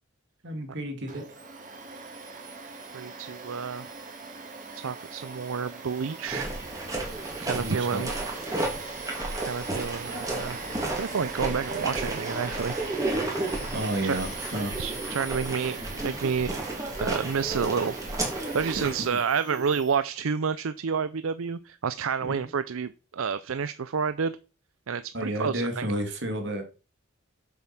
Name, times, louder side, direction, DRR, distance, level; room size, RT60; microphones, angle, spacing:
voice 1, 0.4-1.3 7.5-8.0 13.7-14.8 18.7-19.2 22.2-22.5 25.1-26.6, right 1 dB, 55° right, 5 dB, 2.3 m, -32 dB
Domestic sounds home sounds, 1.1-19.9, right 3 dB, 35° right, 2.2 m, -40 dB
voice 2, 2.9-3.9 4.7-6.5 7.4-8.1 9.4-10.6 10.9-12.7 14.0-14.2 14.8-16.6 17.0-17.9 18.5-24.4 24.9-25.9, right 6 dB, 75° right, 14 dB, 0.5 m, -29 dB
sound 1, 6.2-19.0, right 2 dB, 15° right, 2.8 m, -33 dB
7.6 x 7.3 x 5.9 m, 0.35 s
head